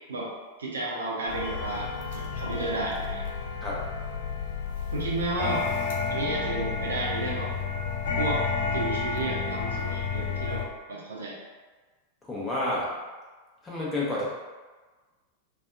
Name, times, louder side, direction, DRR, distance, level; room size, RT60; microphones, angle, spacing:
voice 1, 0.6-3.2 4.9-5.7 6.1-7.5 8.2-8.4 8.7-11.4, right 2 dB, 70° right, -4 dB, 0.6 m, -32 dB
sound 1, 1.3-10.6, left 5 dB, 55° left, 0.4 m, -31 dB
voice 2, 12.3-12.9 13.6-14.3, left 1 dB, 15° left, -6 dB, 0.8 m, -29 dB
2.6 x 2.4 x 2.3 m, 1.3 s
figure-of-eight pair, 90°, 0 cm